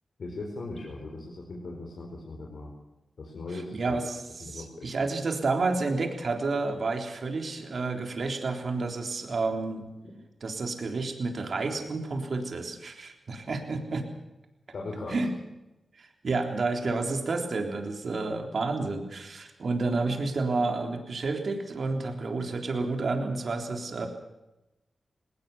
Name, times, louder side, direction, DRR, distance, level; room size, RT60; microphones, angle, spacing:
voice 1, 0.2-2.7 3.2-4.0 4.4-5.0 14.7-15.2, left 2 dB, 75° left, -1 dB, 4.9 m, -39 dB
voice 2, 3.5-9.8 10.4-14.1 15.1-15.3 15.9-24.1, right 3 dB, 65° right, 4 dB, 3.6 m, -30 dB
19.5 x 19.0 x 7.2 m, 0.97 s
cardioid pair, 55°, 0 cm